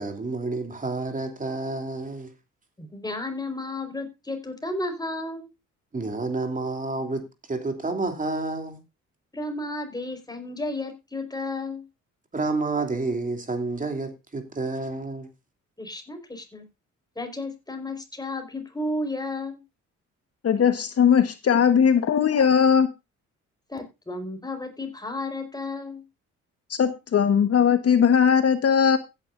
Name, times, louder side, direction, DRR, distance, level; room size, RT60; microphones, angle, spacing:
voice 1, 0.0-2.3 5.9-8.8 12.3-15.3, right 3 dB, 25° right, 3.1 m, -29 dB
voice 2, 2.8-5.5 9.3-11.8 15.8-16.6 17.2-19.6 23.7-26.0, left 2 dB, 15° left, 4.7 m, -33 dB
voice 3, 20.4-22.9 26.7-29.0, left 7 dB, 50° left, 1.4 m, -19 dB
16.0 x 10.0 x 2.6 m
cardioid pair, 90°, 30 cm